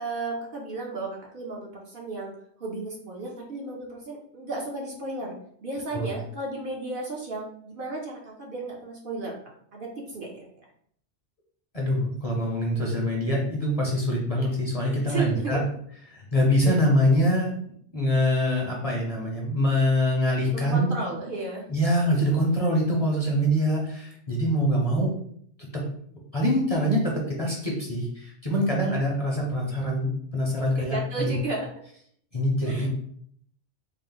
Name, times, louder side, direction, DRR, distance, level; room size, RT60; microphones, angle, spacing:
voice 1, 0.0-2.3 2.6-5.3 5.6-9.4 9.7-10.5 14.8-15.6 16.6-16.8 20.5-21.7 30.6-31.7 32.7-32.9, right 3 dB, 55° right, -1 dB, 0.8 m, -34 dB
voice 2, 11.7-15.6 16.1-17.6 17.9-21.0 21.7-25.1 25.7-25.8 26.3-31.4 32.3-32.9, equal, 35° left, -2 dB, 0.7 m, -24 dB
3.7 x 2.1 x 3.8 m, 0.64 s
omnidirectional pair, 1.2 m